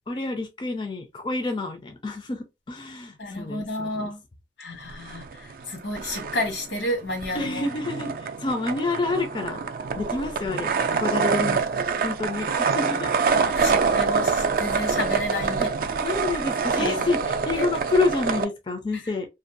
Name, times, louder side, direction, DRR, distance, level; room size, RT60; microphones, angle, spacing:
voice 1, 0.1-2.4 2.7-4.1 7.3-8.1 8.4-9.6 9.9-10.7 11.0-11.6 12.0-13.1 16.0-19.3, left 3 dB, 25° left, 0.4 m, -28 dB
voice 2, 3.2-4.2 4.6-7.7 13.3-15.7 16.3-16.4 16.8-17.3 17.5-17.7 18.9-19.1, left 1 dB, 85° left, 1.1 m, -31 dB
sound 1, 4.9-5.7 5.9-18.5, right 5 dB, 50° right, 0.3 m, -26 dB
2.5 x 2.2 x 2.5 m
head